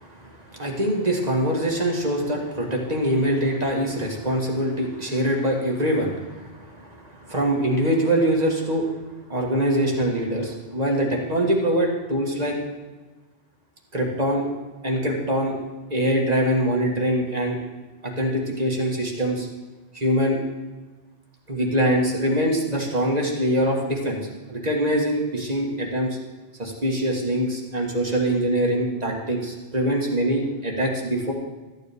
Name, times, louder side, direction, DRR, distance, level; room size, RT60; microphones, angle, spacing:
voice 1, 0.0-8.9 9.3-12.6 13.9-14.4 14.8-15.5 15.9-17.6 18.0-19.5 19.9-20.4 21.5-24.2 24.5-26.2 26.6-31.3, right 1 dB, 35° right, -1 dB, 1.5 m, -23 dB
13.0 x 9.5 x 3.4 m, 1.2 s
omnidirectional pair, 1.2 m